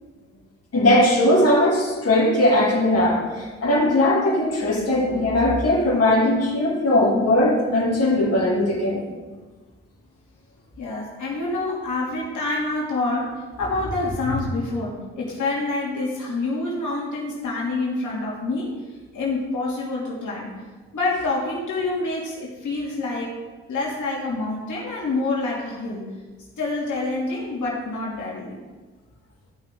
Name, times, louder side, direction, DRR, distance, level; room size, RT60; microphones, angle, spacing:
voice 1, 0.7-9.0, left 1 dB, 45° left, -4 dB, 2.6 m, -19 dB
voice 2, 10.8-18.7 19.1-20.5 20.9-23.3 23.7-26.1 26.6-28.6, left 2 dB, 60° left, -4 dB, 2.7 m, -27 dB
14.0 x 5.9 x 3.8 m, 1.3 s
hypercardioid pair, 50°, 34 cm